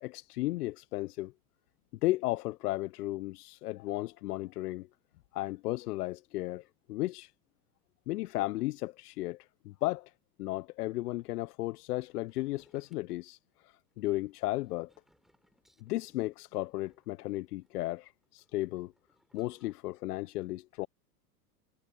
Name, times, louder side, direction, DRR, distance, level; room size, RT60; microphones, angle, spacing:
voice 1, 0.0-1.3 2.0-4.9 5.3-7.3 8.1-10.1 10.4-13.4 13.6-14.9 15.8-18.9 19.3-20.9, left 18 dB, 75° left, 0.6 m, -34 dB
sound 1, 12.3-19.7, equal, ahead, 4.6 m, -71 dB
hypercardioid pair, 100°, 47 cm